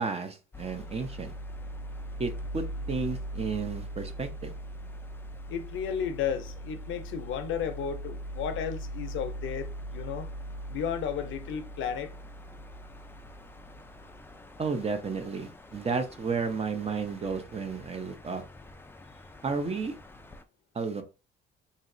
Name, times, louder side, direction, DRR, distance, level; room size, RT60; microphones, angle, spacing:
voice 1, 0.0-1.3 2.2-4.5 14.6-18.4 19.4-20.0 20.7-21.0, right 4 dB, 30° right, 0.6 m, -32 dB
sound 1, 0.5-20.4, right 1 dB, 10° left, 0.3 m, -41 dB
voice 2, 5.5-10.3 10.7-12.1, left 8 dB, 75° left, 0.5 m, -33 dB
3.0 x 2.6 x 2.5 m
cardioid pair, 90°, 20 cm